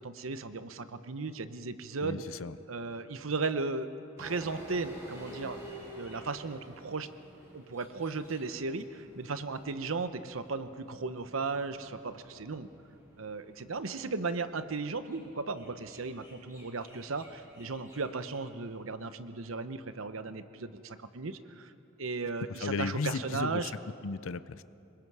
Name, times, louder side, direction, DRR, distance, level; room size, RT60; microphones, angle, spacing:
voice 1, 0.0-2.2 2.7-3.9 4.2-5.7 6.0-7.1 7.5-12.7 13.2-21.7 22.0-23.7, right 4 dB, 90° right, 11 dB, 0.9 m, -36 dB
voice 2, 2.0-2.6 22.6-23.7 24.0-24.6, left 4 dB, 85° left, 15 dB, 0.6 m, -35 dB
sound 1, 4.2-18.8, equal, 15° right, 6.2 m, -52 dB
26.0 x 21.5 x 4.8 m, 2.7 s
head